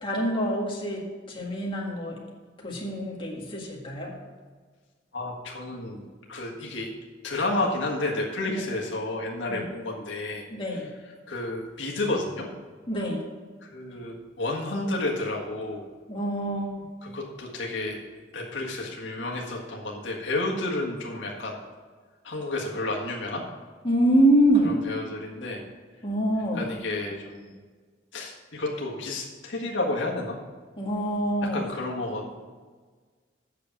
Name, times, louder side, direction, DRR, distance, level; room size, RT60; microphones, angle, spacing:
voice 1, 0.0-2.2 2.6-4.1 8.5-8.6 9.5-9.6 10.5-10.9 12.9-13.2 16.1-16.7 23.8-24.7 26.0-26.6 30.8-31.6, right 1 dB, 30° left, -3 dB, 1.9 m, -25 dB
voice 2, 5.1-6.0 6.3-6.9 7.2-10.4 11.3-12.5 13.6-15.8 17.0-18.1 18.3-21.5 22.2-23.4 24.6-25.6 26.5-27.5 28.1-30.4 31.4-32.4, left 2 dB, 75° left, -2 dB, 1.7 m, -31 dB
8.3 x 6.8 x 7.2 m, 1.5 s
head